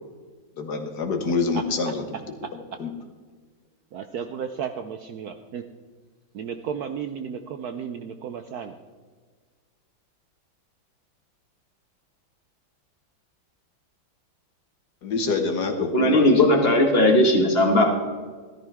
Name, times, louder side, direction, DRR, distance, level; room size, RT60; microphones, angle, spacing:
voice 1, 0.6-2.0 2.8-2.9 15.0-16.3, left 4 dB, 60° left, 6 dB, 1.5 m, -26 dB
voice 2, 3.9-5.6 6.3-8.7, right 7 dB, 70° right, 7 dB, 1.0 m, -33 dB
voice 3, 15.9-18.0, left 1 dB, 30° left, 2 dB, 1.7 m, -18 dB
14.0 x 13.5 x 3.5 m, 1.5 s
omnidirectional pair, 2.2 m